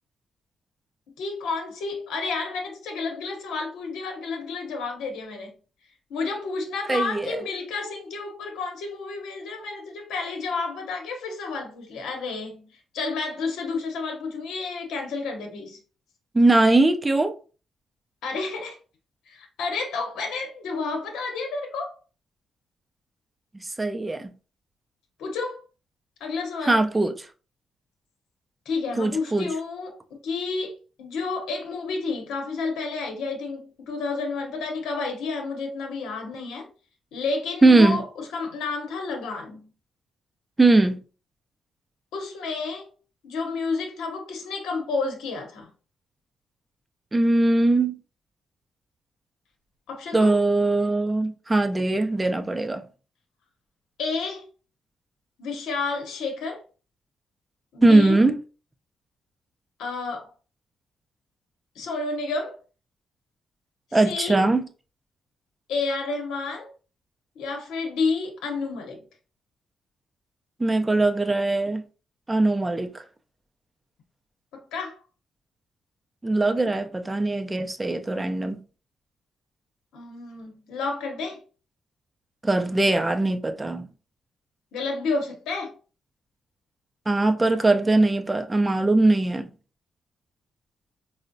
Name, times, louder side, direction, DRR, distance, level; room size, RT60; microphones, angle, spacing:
voice 1, 1.2-5.5 6.1-12.7 12.9-15.8 18.2-18.8 19.3-22.0 25.2-25.6 26.2-26.8 28.7-30.0 30.2-36.7 37.1-39.7 42.1-42.9 43.2-45.7 49.9-50.3 54.0-54.4 55.4-56.6 57.7-58.2 59.8-60.3 61.8-62.6 63.9-64.4 65.7-66.7 67.4-69.0 74.7-75.0 79.9-81.4 84.7-85.7, left 4 dB, 90° left, 0.8 m, -30 dB
voice 2, 6.9-7.4 16.3-17.3 23.5-24.3 26.6-27.3 29.0-29.5 37.6-38.0 40.6-41.0 47.1-47.9 50.1-52.8 57.8-58.4 63.9-64.6 70.6-71.8 72.3-73.0 76.2-78.6 82.4-83.9 87.1-89.5, right 2 dB, 20° right, 0.4 m, -21 dB
4.3 x 2.0 x 2.5 m
cardioid pair, 85°, 0 cm